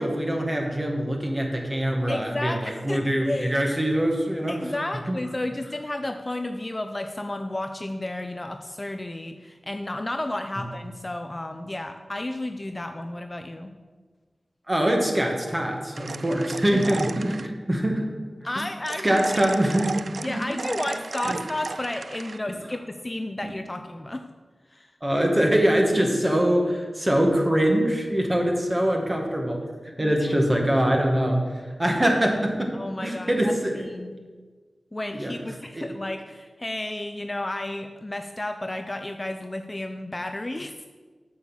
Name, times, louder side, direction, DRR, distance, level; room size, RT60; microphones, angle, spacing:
voice 1, 0.0-4.6 5.1-5.2 14.7-18.0 18.6-18.7 19.0-20.4 25.0-29.6 30.0-31.4 31.8-32.8 33.0-33.8 35.1-35.3 35.7-35.9, right 1 dB, 20° right, 2 dB, 1.7 m, -23 dB
voice 2, 2.1-3.6 4.5-13.7 16.7-16.8 18.4-19.2 20.2-24.2 24.7-24.9 30.0-30.4 32.7-34.2 34.9-40.9, left 1 dB, 25° left, 6 dB, 0.5 m, -32 dB
sound 1, 16.0-17.5 18.9-22.4, right 4 dB, 65° right, 0.3 m, -34 dB
8.0 x 6.3 x 7.3 m, 1.4 s
wide cardioid pair, 85°, 0 cm